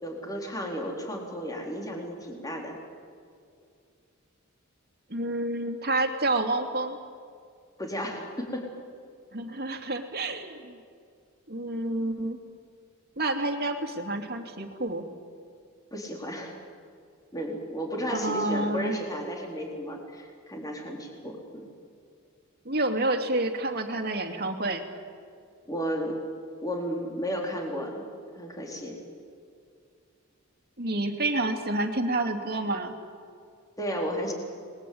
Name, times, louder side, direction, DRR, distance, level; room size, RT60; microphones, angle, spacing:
voice 1, 0.0-2.8 7.8-8.7 15.9-16.6 17.3-21.7 25.7-26.2 26.6-28.0 28.3-29.0 33.8-34.3, equal, 15° left, 0 dB, 4.2 m, -33 dB
voice 2, 5.1-7.0 9.3-10.8 11.5-12.4 13.2-15.1 18.1-19.0 22.6-24.8 30.8-32.9, right 2 dB, 50° right, 5 dB, 2.8 m, -29 dB
29.5 x 21.0 x 8.8 m, 2.3 s
head